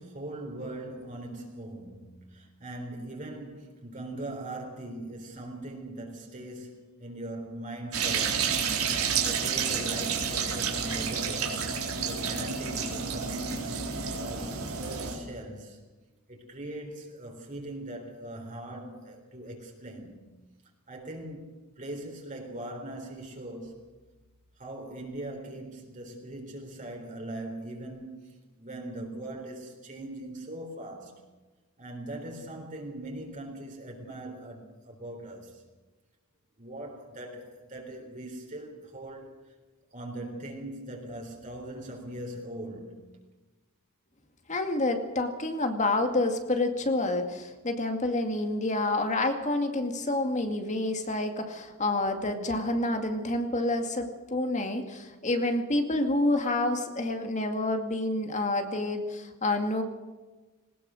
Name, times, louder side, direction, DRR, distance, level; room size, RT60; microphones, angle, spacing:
voice 1, 0.0-11.7 12.0-13.9 14.1-15.8 16.3-20.3 20.9-23.9 24.6-31.2 31.8-35.6 36.6-39.5 39.9-43.0, right 1 dB, 35° right, 3.9 m, -41 dB
sound 1, 7.9-15.2, right 6 dB, 75° right, 4.0 m, -30 dB
voice 2, 44.5-59.8, left 2 dB, 35° left, 2.2 m, -28 dB
20.5 x 19.5 x 6.4 m
head